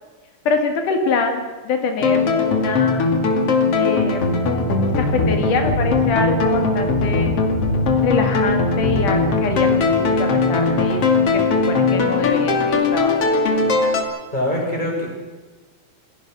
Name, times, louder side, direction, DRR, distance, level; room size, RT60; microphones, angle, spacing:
voice 1, 0.5-3.1 3.8-4.4 5.0-7.4 8.0-11.0 11.3-13.5, left 4 dB, 85° left, 5 dB, 3.7 m, -25 dB
sound 1, 2.0-14.0, left 3 dB, 50° left, 3.3 m, -19 dB
voice 2, 14.3-15.1, left 1 dB, 15° left, 0 dB, 6.0 m, -23 dB
27.5 x 17.5 x 6.2 m, 1.3 s
omnidirectional pair, 3.5 m